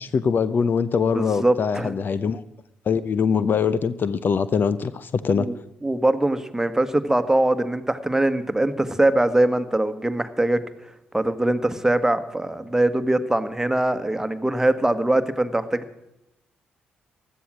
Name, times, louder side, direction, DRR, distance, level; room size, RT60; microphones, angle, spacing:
voice 1, 0.0-2.4 2.9-5.5, left 6 dB, 50° left, 15 dB, 0.7 m, -23 dB
voice 2, 1.1-1.9 5.4-5.5 5.8-10.6 11.1-15.8, right 1 dB, 10° right, 10 dB, 1.5 m, -22 dB
16.0 x 12.0 x 6.3 m, 0.88 s
hypercardioid pair, 45°, 4 cm